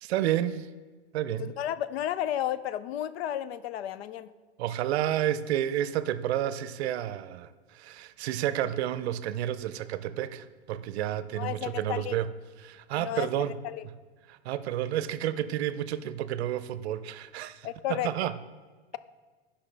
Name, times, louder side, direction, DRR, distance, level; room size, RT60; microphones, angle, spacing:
voice 1, 0.0-0.7 1.1-1.5 4.6-12.3 12.6-13.6 14.3-18.3, right 11 dB, 75° right, 0.6 m, -30 dB
voice 2, 1.4-4.3 11.4-12.1 13.0-13.8 17.6-18.1, left 12 dB, 70° left, 0.5 m, -33 dB
12.0 x 5.6 x 3.3 m
supercardioid pair, 130°, 33 cm